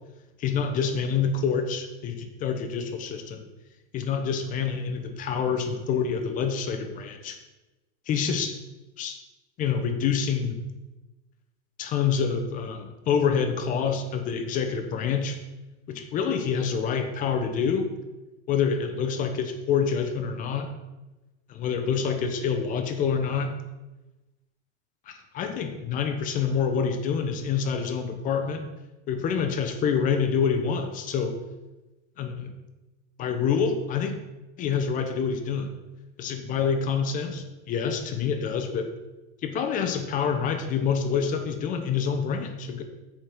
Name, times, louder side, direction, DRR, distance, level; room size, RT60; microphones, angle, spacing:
voice 1, 0.4-3.5 3.9-7.4 8.1-8.6 9.0-9.2 9.6-10.6 11.8-15.4 15.9-17.9 18.5-20.7 21.5-23.5 25.1-28.6 29.1-31.3 32.2-32.5 33.2-34.1 34.6-35.7 36.2-38.9 39.4-42.8, left 6 dB, 25° left, 6 dB, 0.8 m, -27 dB
7.3 x 5.2 x 5.9 m, 1.1 s
supercardioid pair, 155°, 35 cm